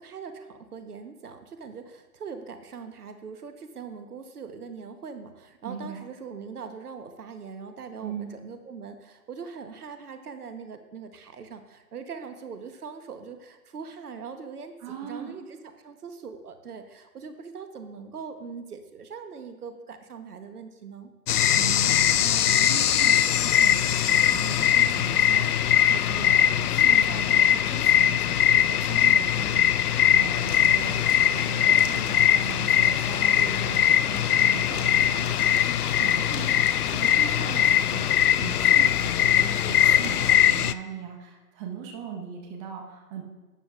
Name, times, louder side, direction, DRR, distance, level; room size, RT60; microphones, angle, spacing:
voice 1, 0.0-21.1 37.3-37.6, right 5 dB, 70° right, 8 dB, 1.1 m, -41 dB
voice 2, 5.6-6.0 8.0-8.4 14.8-15.3 21.6-43.2, right 7 dB, 20° right, 2 dB, 1.1 m, -39 dB
sound 1, 21.3-40.7, left 10 dB, 70° left, 0.5 m, -21 dB
sound 2, 30.3-40.4, left 5 dB, 30° left, 1.2 m, -41 dB
12.0 x 9.9 x 2.4 m, 1.2 s
figure-of-eight pair, 135°, 47 cm